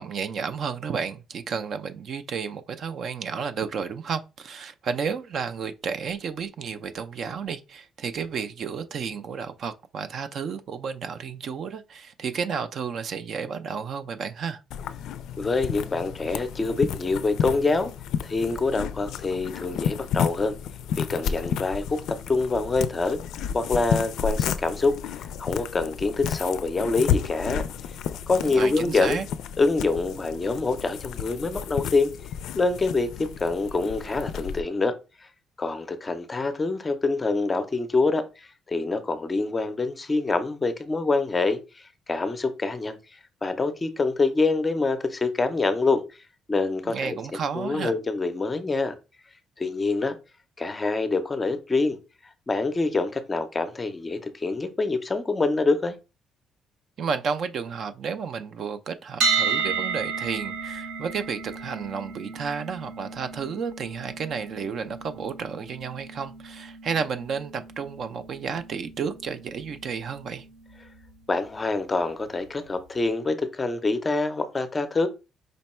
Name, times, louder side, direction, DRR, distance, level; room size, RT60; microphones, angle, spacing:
voice 1, 0.0-14.6 28.4-29.3 46.9-47.9 57.0-70.5, right 6 dB, 45° right, 0.4 m, -32 dB
sound 1, 14.7-34.6, left 8 dB, 75° left, 0.3 m, -32 dB
voice 2, 15.4-17.9 18.2-20.5 21.0-23.2 23.5-27.6 28.3-29.2 29.6-32.1 32.5-35.3 35.6-46.2 46.5-47.2 47.5-49.0 49.6-50.2 50.6-52.0 52.5-55.9 71.3-75.1, left 3 dB, 20° left, 0.5 m, -26 dB
sound 2, 59.2-71.1, right 5 dB, 85° right, 1.2 m, -33 dB
5.1 x 2.2 x 4.2 m
cardioid pair, 165°, 0 cm